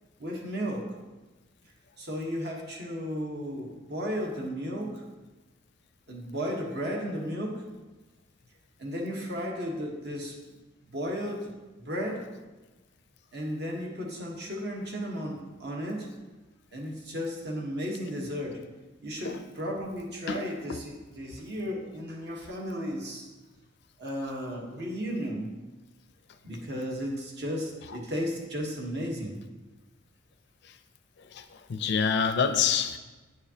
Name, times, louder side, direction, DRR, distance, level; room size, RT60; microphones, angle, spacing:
voice 1, 0.2-0.9 2.0-5.0 6.1-7.6 8.8-10.4 10.8-11.5 11.8-12.3 13.3-16.1 16.7-18.6 19.0-23.3 24.0-25.5 26.4-29.4, equal, 55° right, 0 dB, 1.1 m, -34 dB
voice 2, 31.7-33.0, left 6 dB, 55° left, 9 dB, 0.4 m, -26 dB
9.2 x 4.9 x 2.8 m, 1.2 s
head